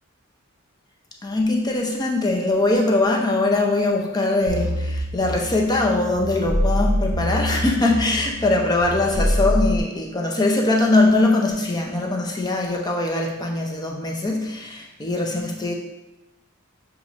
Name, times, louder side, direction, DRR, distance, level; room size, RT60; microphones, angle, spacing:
voice 1, 1.2-15.7, left 2 dB, 20° left, 0 dB, 0.5 m, -21 dB
sound 1, 4.5-9.8, equal, 50° right, 0.7 m, -25 dB
6.5 x 2.4 x 3.0 m, 0.99 s
head